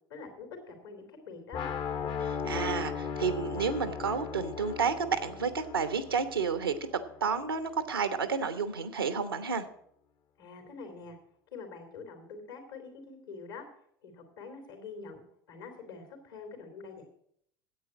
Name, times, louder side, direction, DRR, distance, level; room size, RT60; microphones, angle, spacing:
voice 1, 0.1-1.7 10.4-11.2 11.5-13.6 14.0-15.2 15.5-17.0, left 4 dB, 75° left, 5 dB, 3.1 m, -45 dB
sound 1, 1.5-7.5, left 6 dB, 40° left, 0.9 m, -37 dB
voice 2, 2.2-6.7 7.2-9.6, right 5 dB, 85° right, 11 dB, 1.0 m, -31 dB
10.0 x 8.3 x 7.6 m, 0.69 s
figure-of-eight pair, 75°, 12 cm